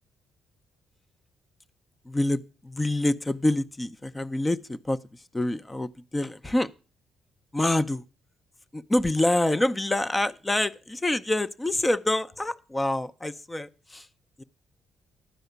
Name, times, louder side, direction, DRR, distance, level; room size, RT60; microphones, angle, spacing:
voice 1, 2.1-5.0 5.3-6.7 7.5-8.0 8.7-14.1 14.4-14.5, left 1 dB, 15° left, 0.6 m, -26 dB
11.5 x 4.9 x 8.0 m
cardioid pair, 90°, 0 cm